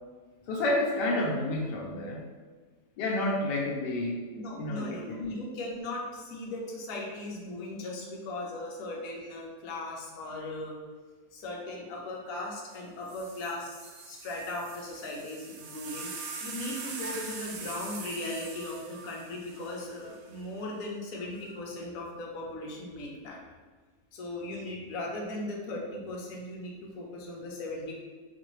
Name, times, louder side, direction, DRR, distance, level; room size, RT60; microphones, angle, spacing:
voice 1, 0.5-2.2 3.0-4.3 4.6-5.3, left 1 dB, 90° left, -2 dB, 1.3 m, -30 dB
voice 2, 4.3-10.8 11.3-16.1 16.4-23.4 24.1-27.9, left 2 dB, 65° left, -2 dB, 1.1 m, -38 dB
sound 1, 12.7-12.8 13.1-20.5 21.4-21.8, right 5 dB, 70° right, 0.9 m, -43 dB
4.6 x 2.5 x 3.1 m, 1.4 s
omnidirectional pair, 1.8 m